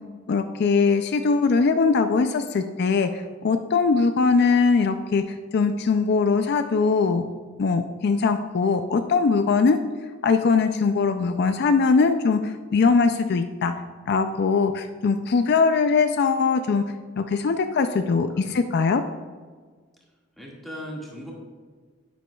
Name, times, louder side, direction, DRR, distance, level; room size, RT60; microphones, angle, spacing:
voice 1, 0.3-7.3 7.6-9.8 10.2-13.7 14.1-16.8 17.2-19.0, left 4 dB, 55° left, 8 dB, 0.4 m, -21 dB
voice 2, 20.4-21.3, equal, ahead, -4 dB, 1.8 m, -37 dB
9.4 x 9.2 x 2.3 m, 1.5 s
head